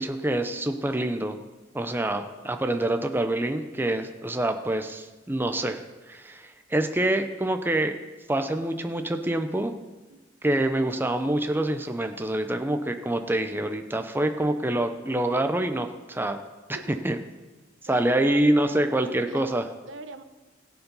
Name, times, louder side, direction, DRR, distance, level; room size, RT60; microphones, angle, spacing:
voice 1, 0.0-1.4 1.7-5.8 6.1-7.9 8.3-9.8 10.4-16.4 17.0-17.2 17.9-19.6, right 1 dB, 10° right, 7 dB, 0.6 m, -26 dB
voice 2, 17.9-20.2, right 3 dB, 80° right, 9 dB, 0.9 m, -42 dB
17.0 x 7.1 x 5.4 m, 1.2 s
head